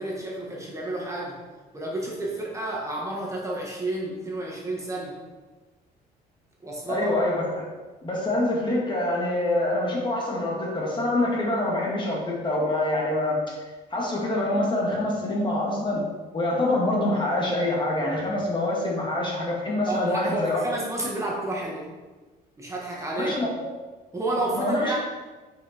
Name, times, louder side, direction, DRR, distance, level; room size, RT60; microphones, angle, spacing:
voice 1, 0.0-1.4 1.7-5.2 6.6-7.1 19.9-21.9 22.6-23.5 24.1-25.0, right 1 dB, 15° right, -3 dB, 1.9 m, -30 dB
voice 2, 6.9-7.6 8.0-13.5 13.9-16.0 16.3-20.6 23.2-23.5 24.5-24.9, left 1 dB, 30° left, -3 dB, 2.2 m, -25 dB
7.9 x 5.6 x 4.6 m, 1.2 s
cardioid pair, 110°, 17 cm